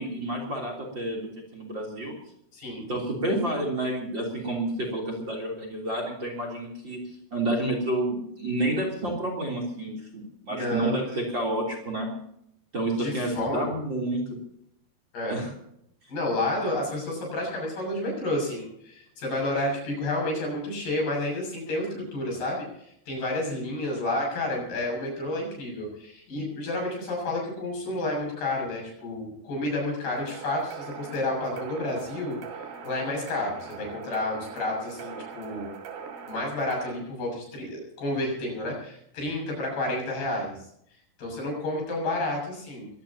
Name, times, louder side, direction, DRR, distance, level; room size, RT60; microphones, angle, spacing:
voice 1, 0.0-2.1 2.9-7.0 7.3-12.1 12.7-14.2 15.3-15.5, right 1 dB, 30° right, 1 dB, 3.5 m, -29 dB
voice 2, 2.5-2.8 10.5-11.0 13.0-13.7 15.1-15.4 16.1-32.4 32.8-35.7 36.3-40.6 41.2-42.9, left 1 dB, 70° left, 0 dB, 8.9 m, -30 dB
sound 1, 30.1-36.9, right 6 dB, 80° right, 4.4 m, -41 dB
23.0 x 17.5 x 2.9 m, 0.71 s
omnidirectional pair, 4.8 m